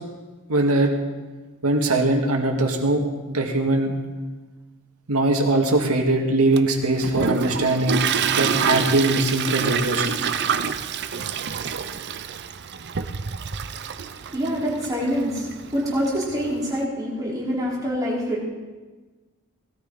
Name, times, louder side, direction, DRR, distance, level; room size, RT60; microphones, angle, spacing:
voice 1, 0.5-0.9 1.6-3.9 5.1-8.0 8.3-10.3, right 2 dB, 85° right, 2 dB, 2.0 m, -21 dB
Toilet flush, 6.6-16.8, right 7 dB, 50° right, 0.6 m, -27 dB
voice 2, 13.8-18.4, equal, 15° right, -7 dB, 4.6 m, -26 dB
18.0 x 13.5 x 4.2 m, 1.3 s
head